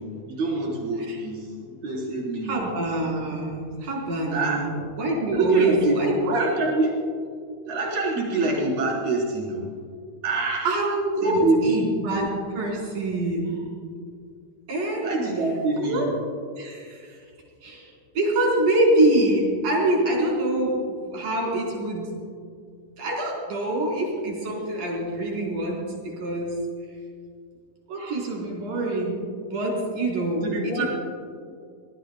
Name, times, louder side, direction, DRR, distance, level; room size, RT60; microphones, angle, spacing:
voice 1, 0.0-2.7 4.3-4.6 5.3-7.0 7.6-9.7 10.2-10.7 11.2-11.8 15.0-16.1 30.4-30.9, right 2 dB, 60° right, -4 dB, 5.4 m, -25 dB
voice 2, 2.4-6.5 10.6-13.6 14.7-15.1 15.8-16.1 16.6-17.2 17.6-22.1 23.0-26.6 27.9-29.2 29.5-30.9, right 1 dB, 90° right, -3 dB, 6.0 m, -25 dB
24.0 x 20.5 x 2.3 m, 2.2 s
omnidirectional pair, 3.7 m